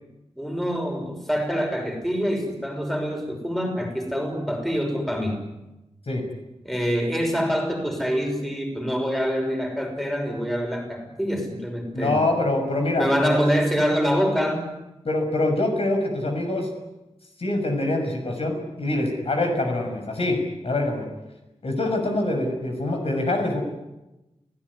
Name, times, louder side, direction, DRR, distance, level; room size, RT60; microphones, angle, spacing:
voice 1, 0.4-5.4 6.6-12.2 13.0-14.7, equal, ahead, 3 dB, 5.8 m, -25 dB
voice 2, 11.9-13.4 15.0-16.7 17.4-20.4 20.6-21.0 21.6-23.6, left 2 dB, 65° left, 4 dB, 6.2 m, -24 dB
30.0 x 17.0 x 9.8 m, 1.0 s
wide cardioid pair, 105°, 11 cm